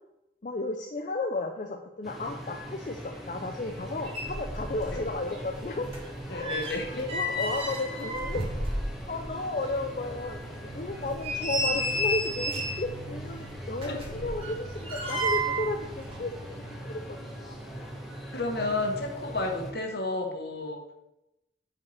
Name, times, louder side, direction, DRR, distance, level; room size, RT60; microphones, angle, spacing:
voice 1, 0.4-5.9 6.3-6.6 6.9-16.3 16.7-17.6, left 2 dB, 45° left, 3 dB, 0.5 m, -34 dB
sound 1, 2.0-19.7, right 1 dB, ahead, 1.3 m, -41 dB
sound 2, 3.8-3.9 4.1-5.0 5.3-9.3 9.6-9.7 10.3-10.4 10.9-12.9 13.7-15.7 16.0-16.2, equal, 30° right, 2.1 m, -31 dB
voice 2, 6.3-6.9 13.8-14.0 18.3-20.8, left 2 dB, 60° left, 2 dB, 1.3 m, -31 dB
sound 3, 9.7-17.4, right 2 dB, 45° right, 0.7 m, -46 dB
5.7 x 5.0 x 6.6 m, 0.92 s
head